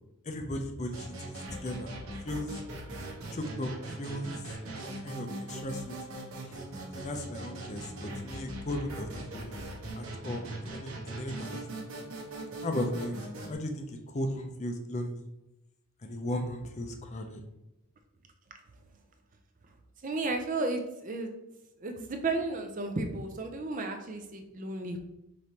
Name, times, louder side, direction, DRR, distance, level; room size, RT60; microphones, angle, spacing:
voice 1, 0.3-2.5 3.3-4.3 5.0-5.9 6.5-6.6 6.9-11.6 12.6-13.2 13.5-15.2 16.0-17.4, left 1 dB, 30° left, 5 dB, 0.5 m, -36 dB
sound 1, 0.9-13.5, right 1 dB, 70° right, 1.0 m, -40 dB
voice 2, 20.0-21.3 21.8-25.0, right 2 dB, 35° right, 5 dB, 0.5 m, -33 dB
5.1 x 3.1 x 2.8 m, 0.92 s
head